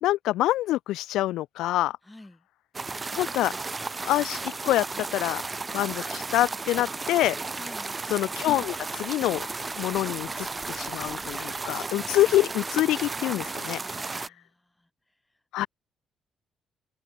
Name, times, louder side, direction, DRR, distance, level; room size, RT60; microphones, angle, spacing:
voice 1, 0.0-2.0 3.2-3.5 4.1-4.9 5.1-5.4 5.7-7.4 8.1-9.5 9.8-14.0 15.5-15.7, left 15 dB, 90° left, 0.4 m, -26 dB
voice 2, 2.0-2.5 7.6-8.0 13.8-15.4, left 1 dB, 10° left, 5.7 m, -51 dB
sound 1, 2.7-14.3, right 3 dB, 20° right, 2.0 m, -34 dB
open air
cardioid pair, 115°, 0 cm